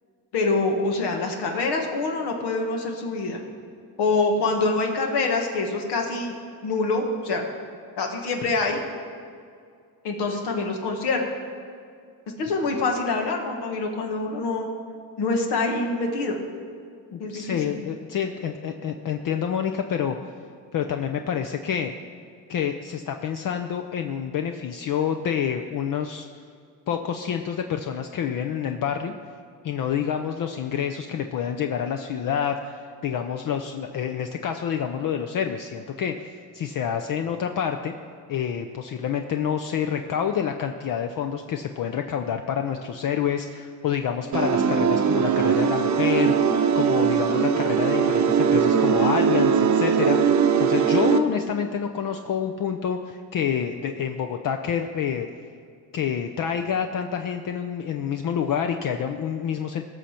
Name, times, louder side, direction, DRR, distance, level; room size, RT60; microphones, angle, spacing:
voice 1, 0.3-3.4 4.0-6.4 6.6-7.4 8.0-8.8 10.0-11.2 12.4-14.7 15.2-16.4 17.2-17.8, left 3 dB, 80° left, 2 dB, 1.6 m, -25 dB
voice 2, 17.1-20.2 20.7-21.9 22.5-26.3 26.9-29.1 29.6-37.9 38.3-55.3 55.9-59.9, left 8 dB, 55° left, 6 dB, 0.7 m, -28 dB
sound 1, 44.3-51.2, right 7 dB, 45° right, 0.8 m, -20 dB
17.0 x 6.4 x 4.4 m, 2.2 s
cardioid pair, 90°, 40 cm